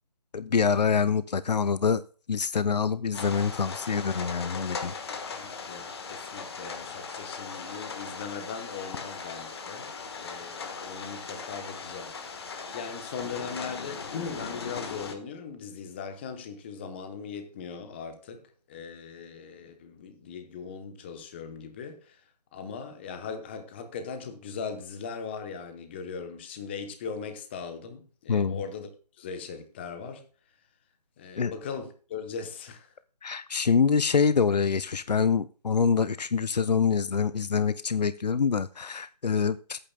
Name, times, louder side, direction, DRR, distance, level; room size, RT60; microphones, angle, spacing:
voice 1, 0.3-2.0 2.3-4.9 28.3-28.6 31.4-31.5 33.2-39.8, left 6 dB, 80° left, 0.6 m, -25 dB
sound 1, 3.1-15.1, left 5 dB, 40° left, 1.3 m, -38 dB
voice 2, 5.1-9.9 10.2-18.4 18.7-22.2 22.5-28.9 29.2-30.2 31.2-32.9, left 6 dB, 15° left, 0.8 m, -39 dB
17.0 x 9.0 x 2.2 m
figure-of-eight pair, 160°, 21 cm